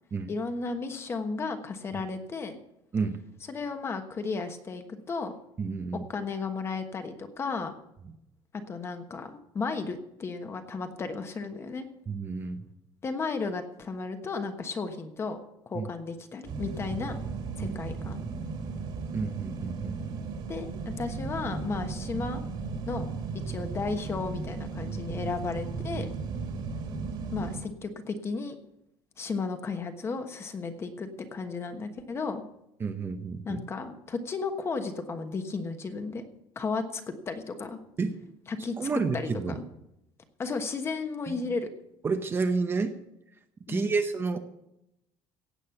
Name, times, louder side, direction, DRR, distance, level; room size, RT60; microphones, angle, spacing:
voice 1, 0.3-2.6 3.5-5.3 6.1-7.7 8.7-11.9 13.0-15.4 15.7-17.2 17.6-18.2 20.5-22.4 22.9-23.1 23.5-26.1 27.3-28.6 29.2-32.4 33.4-36.2 36.5-37.8 38.5-38.9 39.1-39.3 39.5-39.6 40.4-41.7 43.7-43.9, left 4 dB, 25° left, 7 dB, 1.2 m, -34 dB
voice 2, 5.6-6.0 12.1-12.6 15.7-15.9 17.6-17.8 19.1-20.1 26.5-26.7 32.8-33.6 38.0-38.2 38.8-39.6 41.3-41.5 42.0-43.0 43.7-44.4, right 4 dB, 20° right, 7 dB, 0.8 m, -30 dB
sound 1, 16.4-27.6, right 4 dB, 50° right, 2.4 m, -35 dB
16.5 x 8.3 x 5.8 m, 0.83 s
cardioid pair, 170°, 10 cm